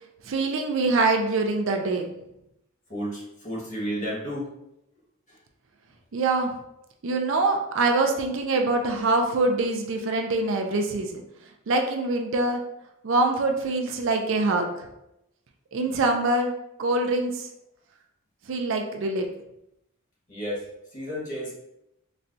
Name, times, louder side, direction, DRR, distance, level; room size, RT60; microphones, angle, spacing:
voice 1, 0.2-2.1 6.1-6.5 7.0-11.2 11.7-12.6 13.0-14.9 15.7-16.5 16.8-17.5 18.5-19.2, right 2 dB, 60° right, 3 dB, 0.4 m, -24 dB
voice 2, 2.9-4.5 20.3-20.6 20.9-21.5, equal, 35° left, -5 dB, 1.2 m, -32 dB
4.1 x 2.2 x 2.5 m, 0.84 s
head